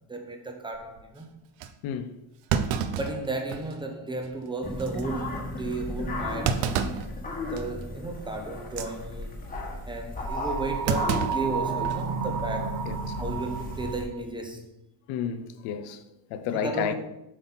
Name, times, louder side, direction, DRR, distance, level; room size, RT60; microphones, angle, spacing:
voice 1, 0.1-1.4 2.9-7.0 7.5-9.4 9.9-12.9 13.2-14.7 16.5-16.9, right 2 dB, 10° right, 0.7 m, -34 dB
Thump thud, 0.7-1.0 1.6-1.7 2.5-3.8 4.2-4.3 4.8-5.0 6.4-7.1 7.6-7.8 8.6-8.9 10.9-12.1 12.4-12.5 13.6-14.0, right 7 dB, 80° right, 0.8 m, -29 dB
voice 2, 1.8-2.1 12.8-13.2 15.1-16.0 16.3-16.9, left 8 dB, 80° left, 0.9 m, -31 dB
sound 1, 4.6-14.0, left 2 dB, 15° left, 1.3 m, -36 dB
sound 2, 10.2-14.2, right 6 dB, 45° right, 0.7 m, -32 dB
7.5 x 5.8 x 4.2 m
cardioid pair, 165°, 50 cm